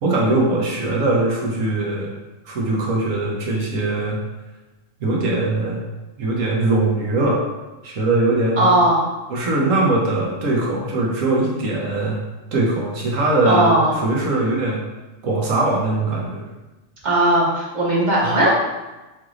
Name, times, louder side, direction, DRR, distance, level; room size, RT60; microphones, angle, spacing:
voice 1, 0.0-2.1 2.4-4.2 5.0-5.8 6.2-7.4 7.8-8.7 9.3-12.2 12.5-14.8 15.2-16.4 18.2-18.4, right 2 dB, 70° right, -3 dB, 1.4 m, -21 dB
voice 2, 8.6-9.0 13.4-14.0 17.0-18.5, right 1 dB, 35° right, -5 dB, 1.1 m, -17 dB
5.9 x 3.0 x 2.5 m, 1.1 s
omnidirectional pair, 1.4 m